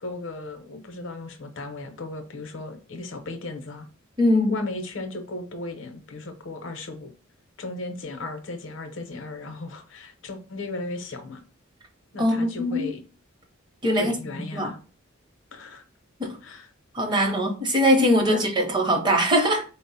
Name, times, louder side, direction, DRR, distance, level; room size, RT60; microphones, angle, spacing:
voice 1, 0.0-3.9 4.5-7.1 7.6-11.4 12.1-13.0 13.9-14.8 15.5-15.8 16.4-16.7 17.1-17.2 18.3-18.4, left 2 dB, 60° left, 0.7 m, -36 dB
voice 2, 4.2-4.5 12.2-12.9 13.8-14.7 16.2-16.3 16.9-19.6, equal, 20° right, 0.8 m, -22 dB
4.2 x 2.0 x 4.0 m
head